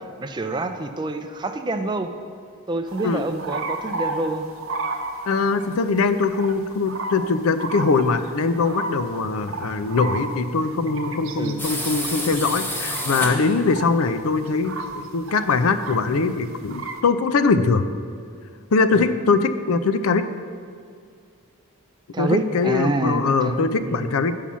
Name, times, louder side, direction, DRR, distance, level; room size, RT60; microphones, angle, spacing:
voice 1, 0.2-2.1 2.7-4.5 11.4-11.6 18.9-19.1 22.1-24.1, right 2 dB, 20° right, 7 dB, 0.4 m, -27 dB
sound 1, 2.9-5.7 6.3-6.5 6.9-7.3 7.6-14.1 14.5-16.1 16.5-17.0, right 3 dB, 65° right, 0.7 m, -32 dB
voice 2, 5.3-17.9 18.7-20.3 22.2-24.3, left 4 dB, 75° left, 10 dB, 0.5 m, -22 dB
sound 2, 11.6-13.8, equal, 10° left, 0.7 m, -29 dB
8.6 x 5.6 x 6.1 m, 2.3 s
head